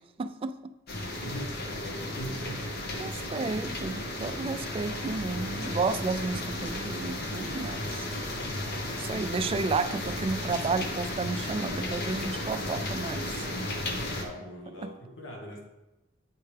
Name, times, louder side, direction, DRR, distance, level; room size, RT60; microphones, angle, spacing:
voice 1, 0.2-0.7 3.0-8.1 9.0-13.5 14.8-14.9, right 4 dB, 30° right, 10 dB, 0.3 m, -32 dB
sound 1, 0.9-14.2, left 1 dB, 55° left, 0.9 m, -34 dB
voice 2, 1.2-2.9 14.2-15.6, equal, 80° left, 0 dB, 1.2 m, -40 dB
8.4 x 4.4 x 3.3 m, 0.98 s
head